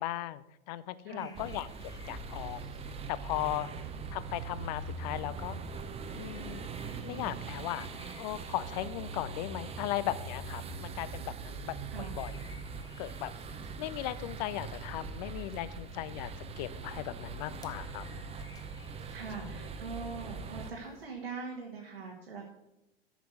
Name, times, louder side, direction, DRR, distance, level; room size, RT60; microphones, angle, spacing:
voice 1, 0.0-1.7 2.1-2.7 3.1-3.7 4.1-5.6 6.1-6.6 7.0-7.9 8.1-12.3 13.0-13.3 13.8-18.0, left 14 dB, 45° left, 17 dB, 0.6 m, -37 dB
voice 2, 1.0-1.4 10.6-11.4 11.9-12.2 17.5-18.3 19.1-22.5, right 4 dB, 75° right, -2 dB, 1.8 m, -44 dB
sound 1, 1.2-21.1, left 3 dB, 10° left, 0.9 m, -60 dB
sound 2, 1.3-20.7, right 4 dB, 20° right, 0.8 m, -42 dB
8.2 x 6.1 x 7.5 m, 0.95 s
figure-of-eight pair, 85°, 30 cm